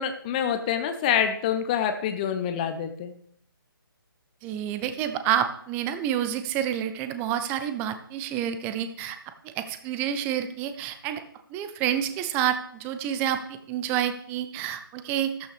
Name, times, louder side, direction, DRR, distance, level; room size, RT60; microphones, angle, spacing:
voice 1, 0.0-3.1, left 8 dB, 20° left, 7 dB, 0.8 m, -26 dB
voice 2, 4.4-9.2 9.4-11.2 11.5-13.4 13.7-15.3, right 10 dB, 15° right, 9 dB, 0.7 m, -28 dB
14.0 x 12.0 x 3.4 m, 0.65 s
figure-of-eight pair, 145°, 12 cm